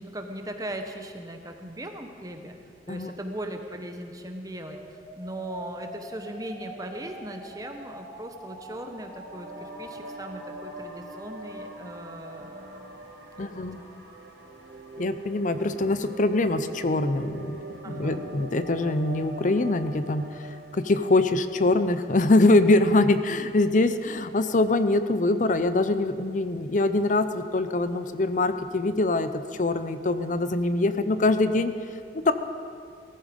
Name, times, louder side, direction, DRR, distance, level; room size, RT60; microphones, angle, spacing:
voice 1, 0.0-2.6 2.9-13.1 13.4-13.5 13.8-14.0 17.8-18.3, right 1 dB, 20° right, 5 dB, 1.0 m, -39 dB
sound 1, 4.7-14.7, right 1 dB, ahead, 2.2 m, -47 dB
sound 2, 8.8-22.1, right 2 dB, 65° right, 1.7 m, -42 dB
voice 2, 13.4-13.8 15.0-17.6 17.9-31.7 32.1-32.3, left 2 dB, 45° left, 11 dB, 0.7 m, -23 dB
18.5 x 14.0 x 5.2 m, 2.2 s
head